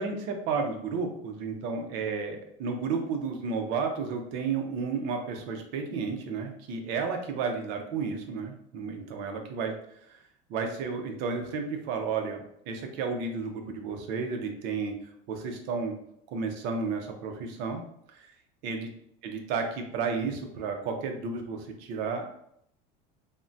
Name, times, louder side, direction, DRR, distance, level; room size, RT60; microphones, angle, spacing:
voice 1, 0.0-9.7 10.1-10.2 10.5-14.9 15.3-15.9 16.3-17.8 18.1-18.3 18.6-18.9 19.2-22.2, right 5 dB, 55° right, 4 dB, 0.5 m, -32 dB
3.5 x 2.1 x 2.5 m, 0.71 s
cardioid pair, 165°, 21 cm